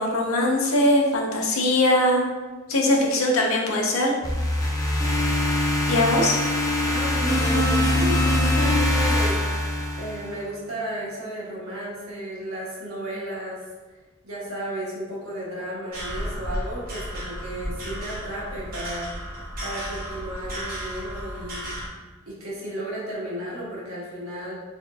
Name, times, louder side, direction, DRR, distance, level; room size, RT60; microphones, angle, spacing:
voice 1, 0.0-2.2 2.7-4.1 5.9-6.4, left 1 dB, 80° left, 0 dB, 0.7 m, -21 dB
sound 1, 4.2-10.4, left 1 dB, 15° left, 0.4 m, -22 dB
voice 2, 6.8-13.6 14.2-19.3 19.6-21.7 22.3-24.5, right 1 dB, 85° right, -5 dB, 1.2 m, -34 dB
sound 2, 15.9-21.9, equal, 45° right, 0.9 m, -33 dB
3.6 x 3.6 x 2.2 m, 1.3 s
head